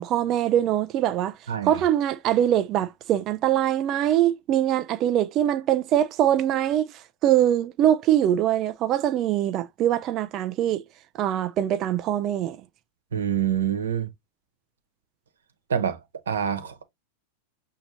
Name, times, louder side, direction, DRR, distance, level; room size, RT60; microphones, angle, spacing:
voice 1, 0.0-1.4 1.6-10.8 11.2-12.6, right 11 dB, 40° right, 0.4 m, -23 dB
voice 2, 13.1-14.1 15.7-16.0 16.3-16.8, right 9 dB, 85° right, 1.0 m, -26 dB
6.5 x 2.8 x 2.7 m
hypercardioid pair, 105°, 0 cm